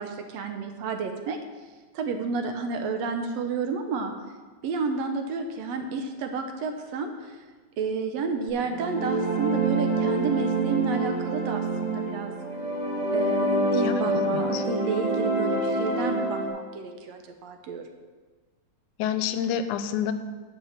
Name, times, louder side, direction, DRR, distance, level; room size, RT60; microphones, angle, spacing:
voice 1, 0.0-1.4 1.9-4.1 4.6-7.4 7.8-12.3 13.1-17.8, right 4 dB, 70° right, 5 dB, 1.7 m, -31 dB
sound 1, 8.6-16.5, right 2 dB, 30° right, 3.1 m, -26 dB
voice 2, 13.8-14.6 19.0-20.1, left 8 dB, 80° left, 10 dB, 2.0 m, -29 dB
11.0 x 6.0 x 7.4 m, 1.4 s
omnidirectional pair, 3.7 m